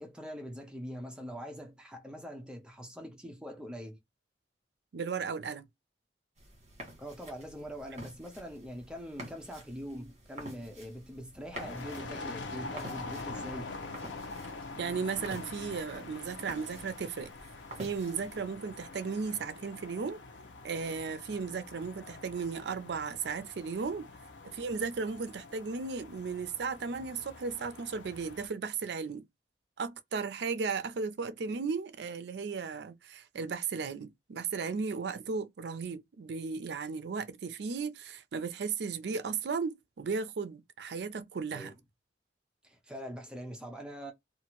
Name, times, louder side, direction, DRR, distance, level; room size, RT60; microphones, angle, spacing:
voice 1, 0.0-4.0 7.0-13.7 41.5-41.7 42.6-44.1, equal, 5° right, 0.6 m, -43 dB
voice 2, 4.9-5.7 14.8-17.3 17.8-20.2 20.6-24.1 24.4-29.2 29.8-41.7, right 5 dB, 65° right, 0.4 m, -35 dB
sound 1, 6.4-18.4, right 1 dB, 40° right, 1.4 m, -49 dB
sound 2, 11.5-28.5, left 3 dB, 85° left, 0.7 m, -45 dB
2.8 x 2.4 x 2.9 m
head